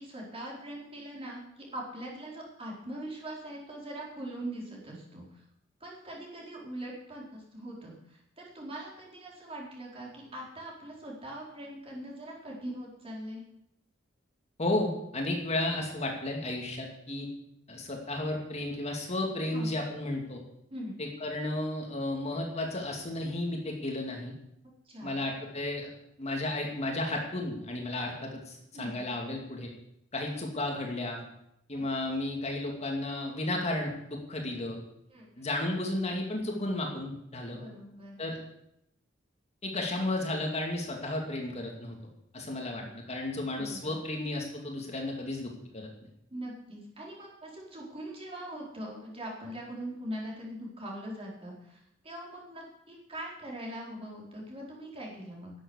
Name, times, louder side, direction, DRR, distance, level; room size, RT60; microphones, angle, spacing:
voice 1, 0.0-5.4 5.8-13.4 19.5-19.7 20.7-20.9 24.9-25.2 28.7-29.0 31.7-31.8 35.1-35.5 37.6-38.2 42.5-42.9 43.6-44.0 46.3-55.5, right 1 dB, 30° right, -3 dB, 4.4 m, -42 dB
voice 2, 14.6-17.3 17.7-20.4 21.0-24.3 25.0-25.9 26.2-29.7 30.1-31.2 31.7-34.8 35.4-37.6 38.2-38.4 39.6-42.0 42.3-45.9, left 2 dB, 35° left, 1 dB, 2.5 m, -33 dB
12.0 x 8.2 x 9.7 m, 0.78 s
head